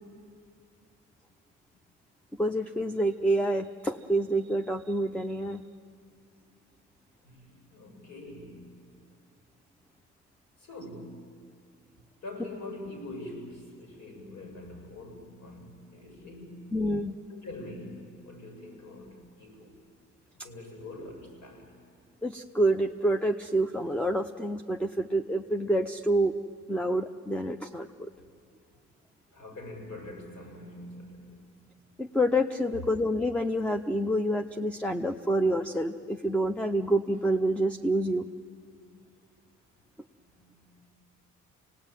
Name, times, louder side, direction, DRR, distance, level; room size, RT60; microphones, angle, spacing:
voice 1, 2.4-5.6 16.7-17.2 22.2-26.3 26.7-28.1 32.0-38.3, right 1 dB, 5° left, 6 dB, 0.7 m, -27 dB
voice 2, 7.2-8.7 10.6-11.2 12.2-16.7 17.3-19.8 20.4-21.7 29.3-31.5 40.2-40.9, left 1 dB, 70° left, 2 dB, 6.6 m, -44 dB
27.0 x 18.5 x 9.1 m, 2.2 s
cardioid pair, 90°, 30 cm